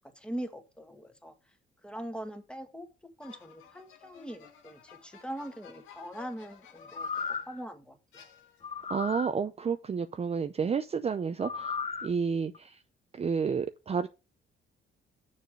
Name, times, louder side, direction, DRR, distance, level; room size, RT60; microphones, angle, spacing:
voice 1, 0.2-1.3 1.8-2.9 3.2-7.1 7.5-8.0, right 1 dB, 5° left, 1.7 m, -41 dB
sound 1, 3.2-7.6 8.1-8.9, left 8 dB, 85° left, 1.6 m, -54 dB
sound 2, 6.8-7.6 8.6-9.3 11.4-12.1 12.5-12.6, left 5 dB, 30° left, 0.7 m, -35 dB
voice 2, 8.9-11.7 12.0-12.8 13.1-14.1, right 6 dB, 30° right, 0.5 m, -30 dB
6.8 x 4.8 x 6.1 m
cardioid pair, 90°, 20 cm